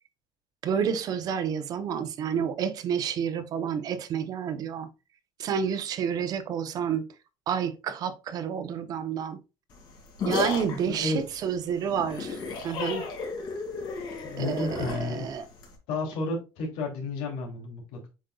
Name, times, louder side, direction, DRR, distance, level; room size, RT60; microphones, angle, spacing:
voice 1, 0.6-4.9 5.4-7.1 7.5-9.4 10.2-12.4 12.6-13.1 14.4-15.5, right 7 dB, 40° right, 0.8 m, -29 dB
sound 1, 9.7-15.8, left 4 dB, 45° left, 2.3 m, -34 dB
voice 2, 10.9-11.2 14.2-15.3 15.9-18.1, left 3 dB, 85° left, 2.8 m, -32 dB
7.7 x 5.3 x 2.3 m
cardioid pair, 165°, 10 cm